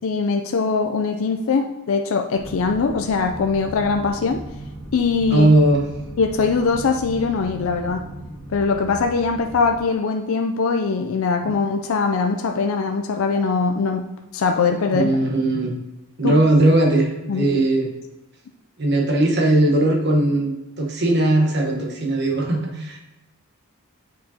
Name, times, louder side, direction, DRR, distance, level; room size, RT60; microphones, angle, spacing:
voice 1, 0.0-4.4 4.9-5.5 6.2-8.0 8.5-14.1 14.3-15.1 16.2-16.3 17.3-17.5, left 4 dB, 65° left, 4 dB, 0.4 m, -21 dB
sound 1, 2.3-9.8, right 1 dB, 90° right, 2.1 m, -37 dB
voice 2, 5.3-5.9 11.4-11.5 14.9-15.8 16.2-17.9 18.8-23.0, right 1 dB, 50° right, 0 dB, 1.1 m, -19 dB
7.4 x 4.6 x 2.8 m, 0.97 s
head